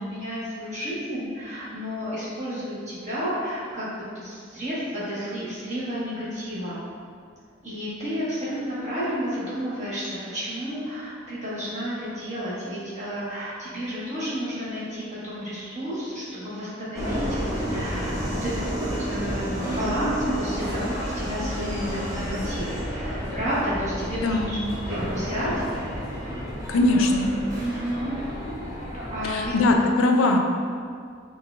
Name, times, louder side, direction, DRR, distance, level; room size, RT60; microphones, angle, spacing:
voice 1, 0.1-3.8 4.1-6.8 7.6-24.6 24.9-25.5 27.6-28.2 29.1-29.5, equal, 35° right, -10 dB, 1.3 m, -31 dB
Subway metro underground, 16.9-29.8, equal, 15° right, 0.7 m, -31 dB
voice 2, 24.2-24.6 26.7-27.3 29.2-30.4, left 2 dB, 90° left, 3 dB, 0.4 m, -21 dB
5.6 x 2.8 x 2.4 m, 2.2 s
head